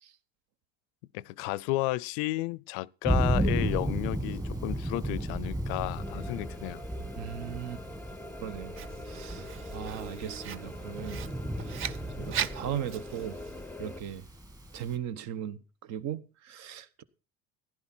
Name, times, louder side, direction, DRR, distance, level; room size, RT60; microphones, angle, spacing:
voice 1, 1.1-6.8, left 19 dB, 85° left, 0.5 m, -32 dB
Thunder, 3.0-15.0, right 1 dB, 10° right, 1.6 m, -34 dB
sound 1, 5.9-14.0, left 2 dB, 5° left, 0.6 m, -45 dB
voice 2, 7.2-7.8 8.4-8.8 9.0-11.2 11.6-13.4 13.8-14.3 14.7-17.0, right 10 dB, 60° right, 1.1 m, -38 dB
Writing, 8.8-13.7, right 10 dB, 45° right, 0.7 m, -40 dB
15.5 x 11.0 x 4.3 m
cardioid pair, 130°, 30 cm